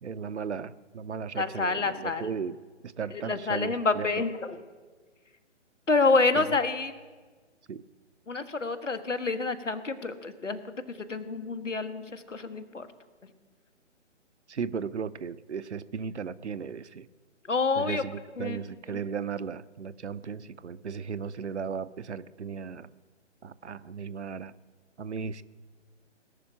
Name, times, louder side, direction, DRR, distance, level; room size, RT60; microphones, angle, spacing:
voice 1, 0.0-2.6 2.8-4.1 6.3-6.5 7.7-7.8 14.5-17.1 17.8-22.9 23.4-24.5 25.0-25.4, right 6 dB, 65° right, 15 dB, 0.7 m, -36 dB
voice 2, 1.3-2.3 3.1-4.6 5.9-6.9 8.3-12.9 17.5-18.0 18.4-18.6 18.9-19.0, left 3 dB, 80° left, 10 dB, 1.6 m, -28 dB
19.0 x 6.8 x 9.8 m, 1.4 s
figure-of-eight pair, 140°, 37 cm